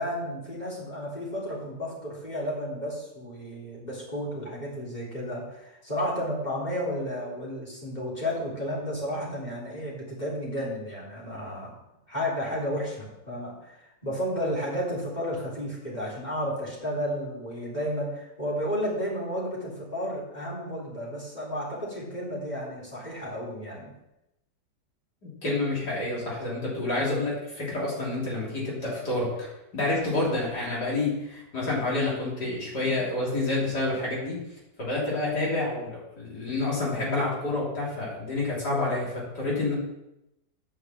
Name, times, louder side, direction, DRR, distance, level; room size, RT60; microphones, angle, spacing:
voice 1, 0.0-11.7 12.1-13.8 14.0-23.9, equal, 25° left, -5 dB, 3.8 m, -32 dB
voice 2, 25.2-29.5 29.7-34.4 34.8-39.7, left 2 dB, 70° left, -5 dB, 3.9 m, -28 dB
9.2 x 6.5 x 7.3 m, 0.88 s
omnidirectional pair, 1.8 m